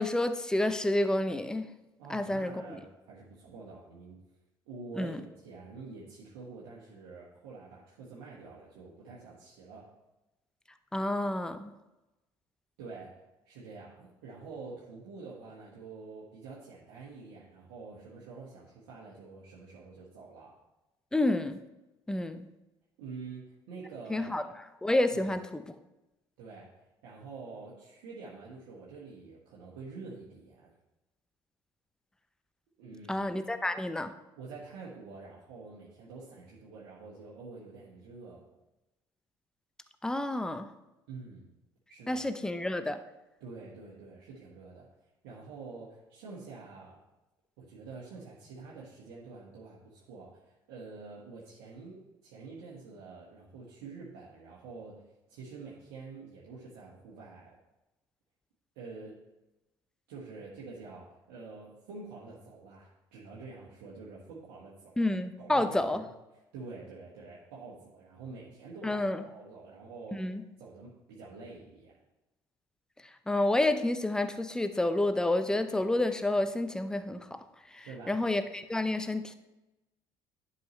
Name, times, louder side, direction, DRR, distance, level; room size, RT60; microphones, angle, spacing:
voice 1, 0.0-1.7 2.1-2.8 5.0-5.2 10.9-11.7 21.1-21.6 22.1-22.5 24.1-24.4 24.8-25.6 33.1-34.1 40.0-40.7 42.1-43.0 65.0-66.0 68.8-69.2 70.1-70.4 73.0-77.4 77.7-79.3, left 1 dB, 5° left, 10 dB, 0.6 m, -29 dB
voice 2, 2.0-4.2 4.7-9.9 12.8-13.2 13.4-20.6 23.0-24.5 25.1-25.4 26.4-30.7 32.8-33.3 34.4-38.4 41.1-41.5 41.9-42.2 43.4-44.9 45.2-47.0 47.6-55.0 55.3-57.6 58.7-59.2 60.1-65.1 65.4-66.1 66.5-70.3 70.6-72.0 77.8-78.2, right 4 dB, 70° right, -6 dB, 1.5 m, -47 dB
11.0 x 5.6 x 3.2 m, 0.99 s
hypercardioid pair, 55°, 12 cm